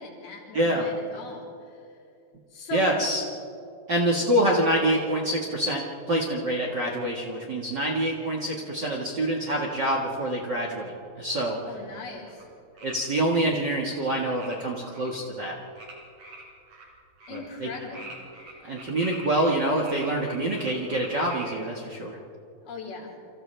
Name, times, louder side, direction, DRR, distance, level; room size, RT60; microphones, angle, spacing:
voice 1, 0.0-1.9 2.5-2.9 11.7-12.5 17.3-18.1 22.6-23.2, left 4 dB, 85° left, -2 dB, 5.3 m, -39 dB
voice 2, 0.5-0.9 2.7-3.2 3.9-11.6 12.8-15.6 17.3-17.7 18.6-22.2, right 1 dB, 45° right, -1 dB, 1.5 m, -26 dB
sound 1, 12.3-12.4 12.8-13.0 14.4-14.6 14.9-15.1 15.8-16.9 17.2-17.4 17.7-19.6 19.8-21.6, right 2 dB, 65° right, 5.4 m, -43 dB
29.0 x 26.0 x 3.4 m, 2.5 s
omnidirectional pair, 4.3 m